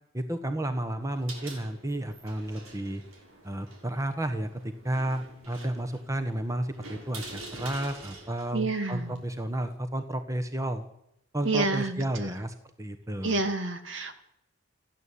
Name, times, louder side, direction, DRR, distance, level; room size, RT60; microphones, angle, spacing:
voice 1, 0.1-3.0 3.4-10.8 11.3-13.4, right 1 dB, 15° right, 7 dB, 1.5 m, -32 dB
sound 1, 1.0-9.8, right 2 dB, 90° right, 6.5 m, -47 dB
voice 2, 8.5-9.2 11.4-12.3 13.2-14.2, right 2 dB, 65° right, 7 dB, 2.6 m, -29 dB
29.0 x 11.5 x 8.7 m, 0.83 s
head